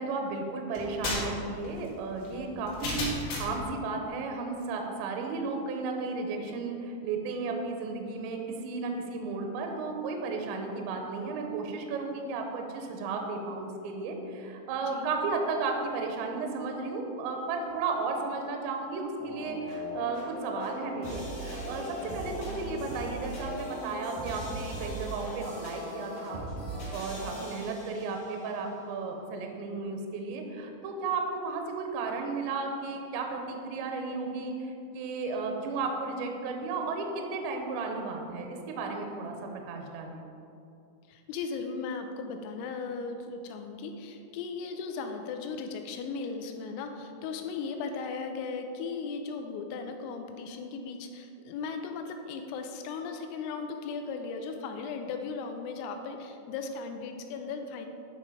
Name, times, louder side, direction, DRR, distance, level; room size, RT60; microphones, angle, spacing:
voice 1, 0.0-26.5 26.9-40.3, right 4 dB, 75° right, 3 dB, 2.8 m, -34 dB
sound 1, 0.7-3.7, left 2 dB, 65° left, 3.9 m, -34 dB
sound 2, 19.2-28.4, equal, 45° left, 2.4 m, -38 dB
voice 2, 41.1-57.9, left 4 dB, 85° left, 5 dB, 3.3 m, -37 dB
11.0 x 5.3 x 4.9 m, 2.6 s
omnidirectional pair, 6.0 m